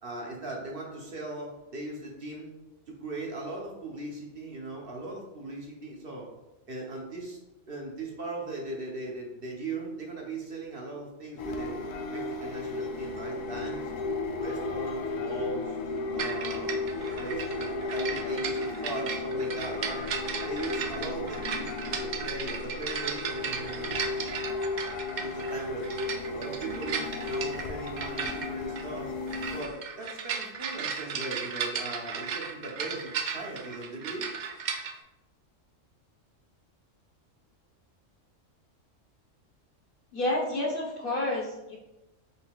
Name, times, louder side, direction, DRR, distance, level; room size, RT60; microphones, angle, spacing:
voice 1, 0.0-2.5 2.9-6.3 6.7-7.4 7.7-11.8 12.1-13.8 14.4-15.8 16.1-16.8 17.2-20.1 20.4-24.0 25.3-25.9 26.2-29.1 29.5-34.3, right 2 dB, 50° right, -2 dB, 1.0 m, -39 dB
sound 1, 11.4-29.6, left 3 dB, 85° left, 1.0 m, -34 dB
sound 2, 16.2-34.9, right 6 dB, 70° right, 0.4 m, -36 dB
voice 2, 40.1-41.8, left 1 dB, 50° left, -3 dB, 1.0 m, -29 dB
5.4 x 3.7 x 2.3 m, 0.98 s
omnidirectional pair, 1.3 m